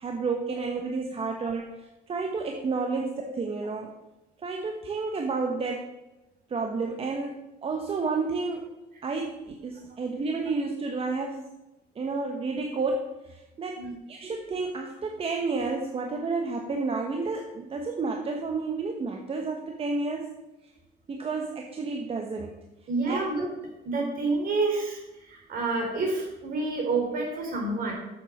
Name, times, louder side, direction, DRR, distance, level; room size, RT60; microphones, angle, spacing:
voice 1, 0.0-3.9 4.4-5.9 6.5-8.7 9.0-11.5 11.9-20.4 21.1-22.5 23.1-23.2, right 4 dB, 35° right, 2 dB, 1.2 m, -31 dB
voice 2, 22.9-23.5 23.8-27.9, right 3 dB, 55° right, 0 dB, 3.8 m, -28 dB
7.9 x 7.2 x 6.5 m, 0.99 s
cardioid pair, 110°, 17 cm